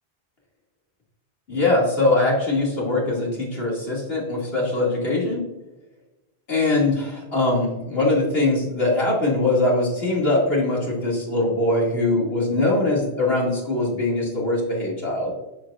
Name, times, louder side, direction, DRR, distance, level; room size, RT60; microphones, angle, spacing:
voice 1, 1.5-5.5 6.5-15.3, left 2 dB, 70° left, -4 dB, 2.6 m, -22 dB
13.0 x 4.8 x 2.5 m, 1.0 s
omnidirectional pair, 1.1 m